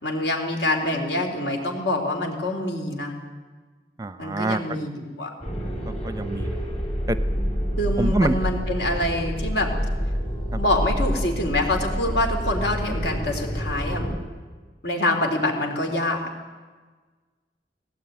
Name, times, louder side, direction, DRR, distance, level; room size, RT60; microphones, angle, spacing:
voice 1, 0.0-3.1 4.2-5.3 7.8-9.7 10.6-14.1 14.8-16.2, left 1 dB, 75° left, 3 dB, 3.7 m, -25 dB
voice 2, 4.0-4.8 5.9-6.6 7.1-7.2 8.0-8.5 10.5-10.6, right 2 dB, 20° right, 13 dB, 0.5 m, -26 dB
sound 1, 5.4-14.2, equal, 35° left, 3.5 m, -27 dB
19.0 x 17.0 x 9.5 m, 1.4 s
head